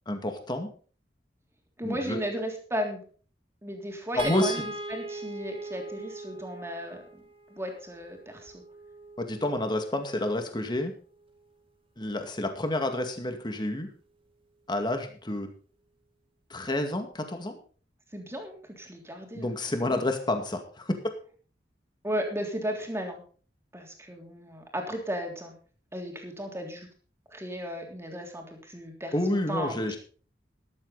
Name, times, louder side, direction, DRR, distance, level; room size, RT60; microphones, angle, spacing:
voice 1, 0.1-0.7 1.8-2.2 4.1-4.6 9.2-10.9 12.0-13.9 14.7-15.5 16.5-17.6 19.3-20.9 29.1-30.0, left 1 dB, 25° left, 5 dB, 2.2 m, -29 dB
voice 2, 1.8-3.0 3.6-7.2 7.5-8.6 18.1-19.5 19.8-20.0 22.0-23.2 23.7-25.5 25.9-26.9 27.3-30.0, equal, 15° right, 2 dB, 3.4 m, -35 dB
sound 1, 4.2-10.5 12.0-12.2 12.6-12.7, right 2 dB, 30° right, 1.9 m, -41 dB
13.5 x 12.0 x 4.1 m, 0.40 s
head